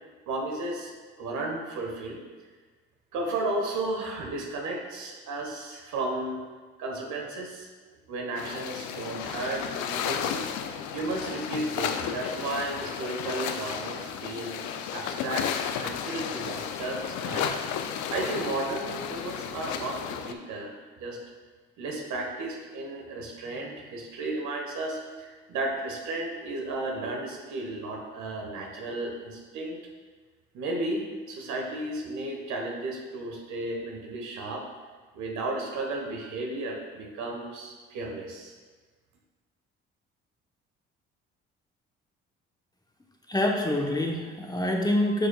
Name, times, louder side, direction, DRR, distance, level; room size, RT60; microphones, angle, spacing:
voice 1, 0.3-2.2 3.1-6.4 6.8-7.7 8.1-10.4 10.9-14.6 14.9-17.6 18.1-21.2 21.8-29.8 30.5-34.7 35.1-38.5, right 2 dB, 65° right, 0 dB, 1.4 m, -34 dB
sound 1, 8.4-20.3, left 8 dB, 65° left, 0.6 m, -33 dB
voice 2, 43.3-45.3, left 1 dB, 10° left, 0 dB, 1.1 m, -26 dB
9.0 x 5.1 x 2.4 m, 1.4 s
hypercardioid pair, 55°, 32 cm